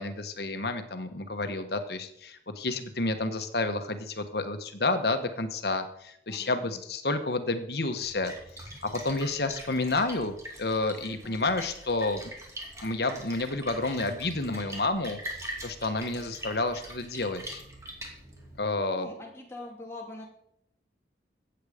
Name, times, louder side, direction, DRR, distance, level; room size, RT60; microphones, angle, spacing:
voice 1, 0.0-8.3 8.8-12.2 12.8-15.2 15.6-17.6 18.6-19.1, left 2 dB, 60° left, 8 dB, 1.3 m, -30 dB
voice 2, 6.3-6.8 11.2-11.5 19.0-20.3, left 2 dB, 15° left, -1 dB, 2.6 m, -43 dB
Splash splatter, 8.0-18.6, right 1 dB, 15° right, 2.6 m, -43 dB
15.5 x 8.0 x 5.1 m, 0.72 s
head